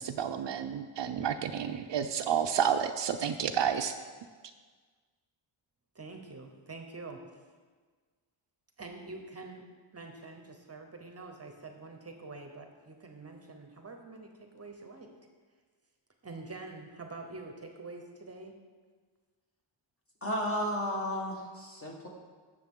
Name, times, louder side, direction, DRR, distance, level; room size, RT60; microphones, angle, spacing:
voice 1, 0.0-3.9, right 8 dB, 60° right, 7 dB, 0.5 m, -30 dB
voice 2, 5.9-7.2 8.8-9.7 9.9-15.1 16.2-18.6, right 3 dB, 30° right, 4 dB, 0.9 m, -46 dB
voice 3, 20.2-22.1, equal, 25° left, -1 dB, 1.6 m, -33 dB
16.5 x 6.8 x 3.7 m, 1.5 s
wide cardioid pair, 145°, 50 cm